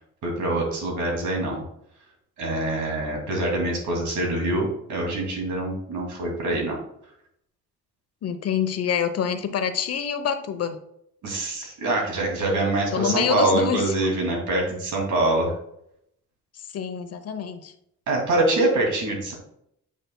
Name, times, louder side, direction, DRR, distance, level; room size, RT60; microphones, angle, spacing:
voice 1, 0.2-1.6 2.4-6.8 11.2-15.5 18.1-19.3, right 2 dB, 75° right, -1 dB, 2.6 m, -24 dB
voice 2, 8.2-10.8 12.9-13.8 16.7-17.7, left 8 dB, 55° left, 10 dB, 0.9 m, -26 dB
8.5 x 5.6 x 2.2 m, 0.74 s
cardioid pair, 90°, 30 cm